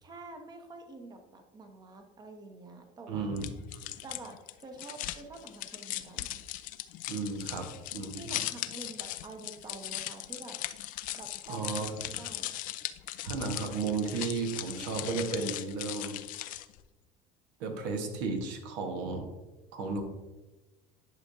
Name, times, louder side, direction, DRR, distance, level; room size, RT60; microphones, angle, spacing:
voice 1, 0.0-3.3 4.0-4.3 4.6-6.4 8.1-10.6 11.1-12.5, right 2 dB, 25° right, 4 dB, 0.9 m, -47 dB
voice 2, 3.1-3.5 7.1-7.7 7.9-8.3 11.5-11.9 13.2-16.2 17.6-19.3 19.7-20.0, right 4 dB, 80° right, 4 dB, 1.4 m, -33 dB
sound 1, 3.4-16.8, left 15 dB, 55° left, 0.4 m, -39 dB
11.0 x 5.1 x 2.7 m, 1.1 s
supercardioid pair, 110°, 16 cm